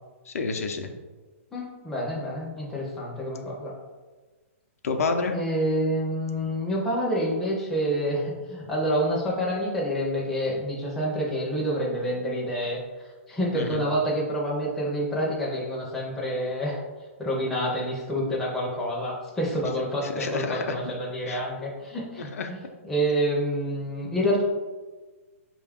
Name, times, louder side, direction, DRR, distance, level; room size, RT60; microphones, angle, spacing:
voice 1, 0.3-0.9 4.8-5.4 13.5-13.8 20.0-20.8 21.3-21.4 22.2-22.5, left 4 dB, 80° left, 5 dB, 0.6 m, -29 dB
voice 2, 1.5-3.7 5.3-12.8 13.3-16.8 17.2-22.3 22.8-24.4, equal, 5° left, -4 dB, 0.4 m, -28 dB
5.0 x 2.3 x 3.5 m, 1.3 s
hypercardioid pair, 170°, 8 cm